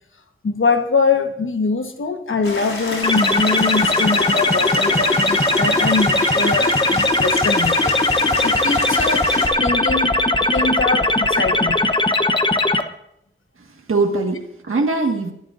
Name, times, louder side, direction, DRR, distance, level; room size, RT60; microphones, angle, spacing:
voice 1, 0.4-7.9 8.4-9.2 9.6-10.1 10.5-11.8, left 4 dB, 70° left, 6 dB, 1.3 m, -23 dB
sound 1, 2.4-9.5, left 2 dB, 85° left, 3.4 m, -29 dB
sound 2, 3.0-12.8, left 2 dB, 25° left, 0.8 m, -18 dB
voice 2, 13.6-15.3, right 3 dB, 80° right, 1 dB, 1.7 m, -22 dB
27.5 x 11.0 x 2.6 m, 0.77 s
wide cardioid pair, 75°, 21 cm